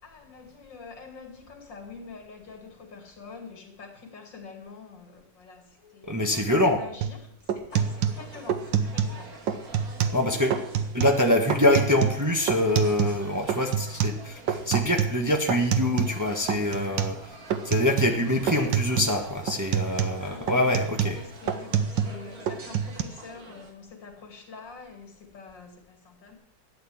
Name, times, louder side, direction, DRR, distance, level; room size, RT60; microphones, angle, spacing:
voice 1, 0.0-9.3 10.0-10.3 19.7-26.4, left 4 dB, 80° left, 2 dB, 3.3 m, -46 dB
voice 2, 6.1-6.8 10.1-10.6 10.9-17.4 17.6-21.2, left 1 dB, 10° right, 1 dB, 1.3 m, -25 dB
sound 1, 7.0-7.2 7.5-9.2 9.5-10.2 10.5-11.2 11.5-13.2 13.5-16.2 16.5-17.2 17.5-18.2 18.5-19.2 19.5-22.2 22.5-23.0, right 7 dB, 85° right, 1.7 m, -27 dB
sound 2, 7.7-23.7, right 3 dB, 55° right, 2.3 m, -46 dB
12.5 x 9.0 x 7.3 m, 0.70 s
omnidirectional pair, 1.9 m